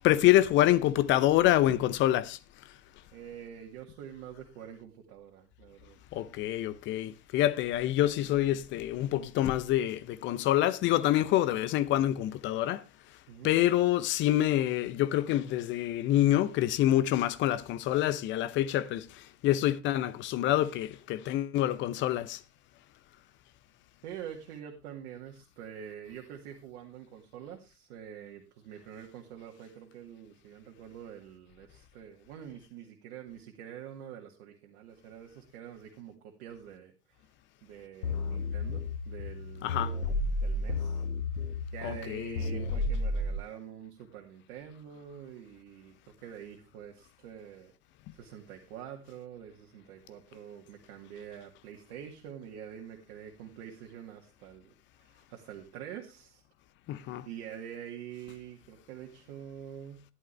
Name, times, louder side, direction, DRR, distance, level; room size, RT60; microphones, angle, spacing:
voice 1, 0.0-2.4 6.1-12.8 13.4-22.4 39.6-39.9 41.8-42.6 56.9-57.3, left 13 dB, 25° left, 0.8 m, -26 dB
voice 2, 3.1-6.0 13.3-13.5 24.0-37.2 37.6-39.8 40.4-41.0 41.7-47.7 48.1-56.4 57.3-60.0, right 9 dB, 45° right, 2.2 m, -46 dB
sound 1, 38.0-43.4, left 2 dB, 65° left, 2.0 m, -32 dB
13.5 x 11.0 x 3.3 m
figure-of-eight pair, 100°, 47 cm